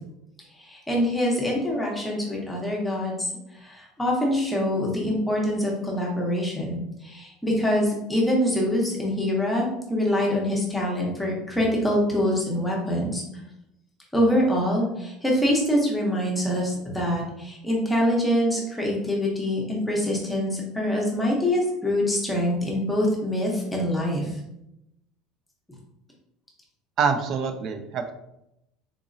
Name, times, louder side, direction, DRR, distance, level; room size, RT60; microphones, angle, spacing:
voice 1, 0.5-13.2 14.1-24.4, left 1 dB, 5° left, -3 dB, 0.7 m, -25 dB
voice 2, 27.0-28.1, right 5 dB, 35° right, 7 dB, 0.4 m, -25 dB
3.8 x 2.9 x 2.6 m, 0.83 s
cardioid pair, 180°, 0 cm